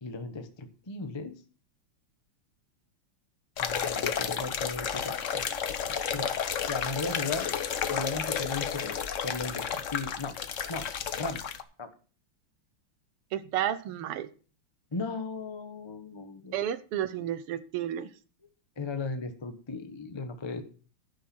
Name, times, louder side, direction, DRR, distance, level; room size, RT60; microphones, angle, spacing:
voice 1, 0.0-1.3 3.6-5.5 6.1-6.3 6.7-7.5 7.9-8.9 9.2-10.4 10.7-10.9 11.2-11.4 11.8-11.9 14.9-16.6 18.8-20.6, left 3 dB, 20° left, 7 dB, 0.7 m, -36 dB
sound 1, 3.6-11.6, left 8 dB, 60° left, 0.8 m, -32 dB
voice 2, 13.3-14.3 16.5-18.1, right 11 dB, 90° right, 14 dB, 1.8 m, -31 dB
11.0 x 10.5 x 4.3 m, 0.39 s
omnidirectional pair, 2.4 m